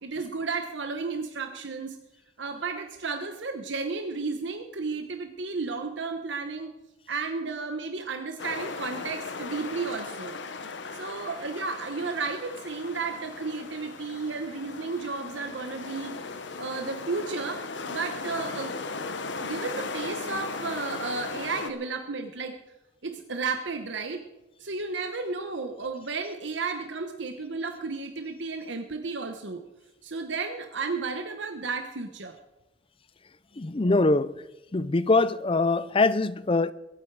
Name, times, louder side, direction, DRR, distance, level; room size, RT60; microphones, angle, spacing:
voice 1, 0.0-2.0 2.4-6.7 7.1-10.4 10.9-16.1 16.6-17.6 17.9-18.7 19.4-22.5 23.0-24.2 24.6-29.6 30.0-32.4, right 4 dB, 65° right, 1.1 m, -33 dB
sound 1, 8.4-21.7, left 4 dB, 60° left, 1.2 m, -37 dB
voice 2, 33.6-34.3 34.7-36.7, left 3 dB, 25° left, 0.5 m, -23 dB
22.0 x 9.7 x 4.8 m
head